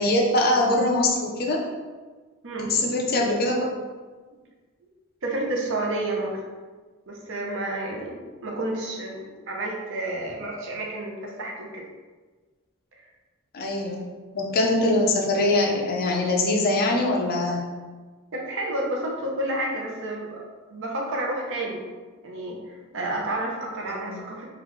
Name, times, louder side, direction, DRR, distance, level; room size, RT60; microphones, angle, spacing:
voice 1, 0.0-1.6 2.6-3.7 13.5-14.0 14.3-17.7 23.9-24.2, left 2 dB, 45° left, 0 dB, 0.6 m, -23 dB
voice 2, 2.4-2.7 3.1-3.3 4.3-4.4 5.2-6.4 7.1-11.8 18.3-20.4 20.7-21.9 22.2-24.5, right 1 dB, 65° right, -1 dB, 0.7 m, -30 dB
3.9 x 2.4 x 3.1 m, 1.4 s
head